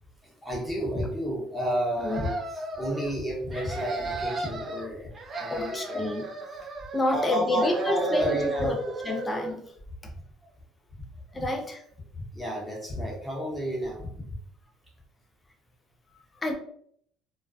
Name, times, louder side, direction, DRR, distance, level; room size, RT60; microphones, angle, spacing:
voice 1, 0.2-5.1 5.4-6.2 7.1-8.8 11.3-11.5 12.3-14.3, equal, ahead, -4 dB, 0.9 m, -31 dB
sound 1, 2.0-3.1 3.5-4.9 5.1-7.3 7.6-9.6, right 3 dB, 35° right, 0.5 m, -34 dB
voice 2, 5.5-6.2 6.9-8.8 9.0-9.6 11.3-11.8 16.4-16.5, left 1 dB, 20° left, 3 dB, 0.5 m, -28 dB
2.3 x 2.2 x 2.4 m, 0.65 s
supercardioid pair, 95°, 0 cm